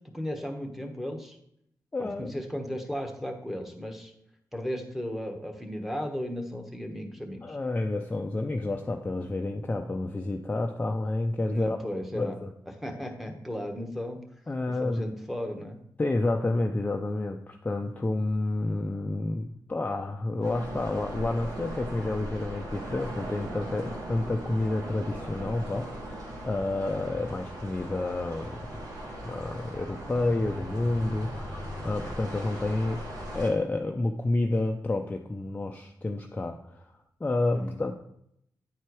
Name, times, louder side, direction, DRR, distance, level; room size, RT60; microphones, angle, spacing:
voice 1, 0.1-1.4 2.0-4.1 4.5-7.6 11.5-12.3 12.8-14.2 14.7-15.8 37.5-37.8, equal, 5° right, 3 dB, 1.2 m, -35 dB
voice 2, 1.9-2.3 7.4-12.5 14.5-15.0 16.0-28.6 29.2-33.0 33.3-36.9 37.2-37.9, left 2 dB, 20° left, 3 dB, 0.5 m, -30 dB
sound 1, 20.4-33.5, equal, 70° right, 2.3 m, -39 dB
9.3 x 4.4 x 4.7 m, 0.73 s
wide cardioid pair, 100°, 7 cm